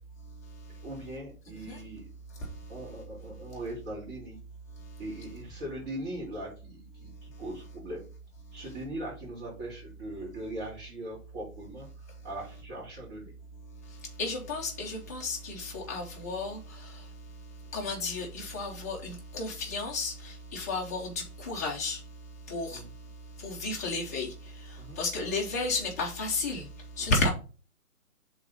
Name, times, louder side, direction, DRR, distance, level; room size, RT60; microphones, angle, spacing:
voice 1, 0.8-2.0 2.7-4.4 5.0-8.0 8.5-13.3 22.7-22.9 24.8-25.0 27.0-27.2, right 1 dB, 40° right, 3.9 m, -40 dB
voice 2, 14.2-17.1 17.7-22.0 22.5-22.8 23.4-26.7 27.0-27.3, left 3 dB, 10° left, 0.6 m, -33 dB
5.2 x 3.9 x 5.4 m
figure-of-eight pair, 145°, 45 cm